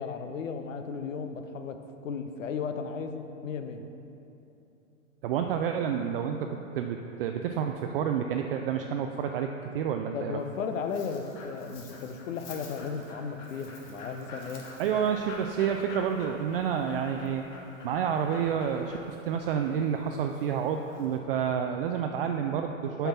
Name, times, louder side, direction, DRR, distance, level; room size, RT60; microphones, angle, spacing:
voice 1, 0.0-3.9 10.1-14.7 15.0-15.2 23.0-23.1, left 6 dB, 75° left, 8 dB, 0.8 m, -35 dB
voice 2, 5.2-10.4 14.8-17.4 17.8-23.1, right 8 dB, 45° right, 4 dB, 0.4 m, -29 dB
Dog, 10.4-21.2, left 2 dB, 30° left, 1.3 m, -47 dB
7.0 x 5.9 x 5.7 m, 2.9 s
hypercardioid pair, 125°, 40 cm